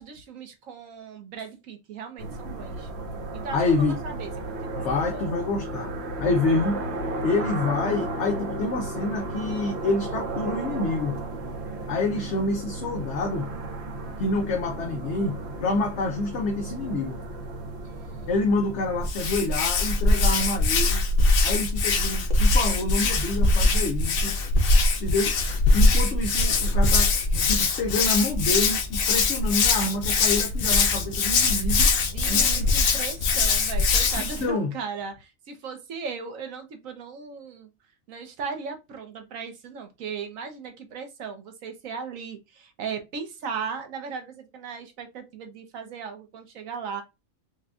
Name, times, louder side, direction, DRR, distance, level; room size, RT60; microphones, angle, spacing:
voice 1, 0.0-2.9 3.3-3.7 4.0-5.4 17.8-18.3 32.0-37.7 38.1-47.0, right 5 dB, 80° right, 1.3 m, -37 dB
sound 1, 2.2-19.1, right 2 dB, 55° right, 1.0 m, -34 dB
voice 2, 3.5-4.0 4.7-5.9 6.2-6.8 7.2-11.2 11.9-13.5 14.2-17.2 18.3-21.0 21.4-24.4 25.0-25.4 25.7-31.9 32.3-32.7 34.2-34.7, left 3 dB, 65° left, 0.9 m, -27 dB
Hands, 19.0-34.4, left 3 dB, 85° left, 1.2 m, -22 dB
5.0 x 2.2 x 2.4 m
omnidirectional pair, 1.4 m